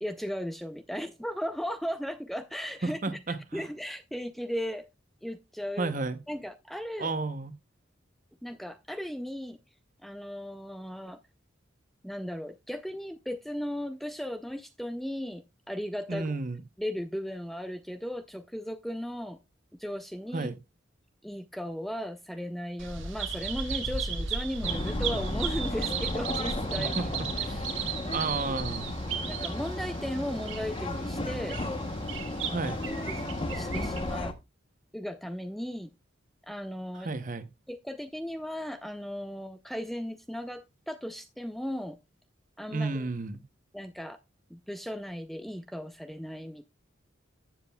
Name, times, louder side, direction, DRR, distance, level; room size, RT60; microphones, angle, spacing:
voice 1, 0.0-4.9 5.2-5.9 6.3-7.1 8.4-9.6 10.0-11.2 12.0-16.3 16.8-19.4 19.8-20.5 21.2-27.1 27.4-27.8 28.2-28.3 29.3-31.6 33.1-33.2 33.5-34.3 34.9-35.9 36.4-37.1 37.7-42.0 42.6-43.1 43.7-44.2 44.5-46.7, equal, ahead, 0.4 m, -36 dB
voice 2, 2.8-3.6 5.8-6.2 7.0-7.5 16.1-16.6 20.3-20.6 26.8-27.1 28.1-28.9 32.4-32.8 37.0-37.4 42.7-43.4, right 3 dB, 40° right, 0.8 m, -32 dB
Bird vocalization bird call bird song, 22.8-34.2, right 5 dB, 80° right, 1.6 m, -35 dB
sound 1, 24.6-34.3, left 1 dB, 25° left, 0.9 m, -34 dB
14.0 x 7.5 x 2.3 m
head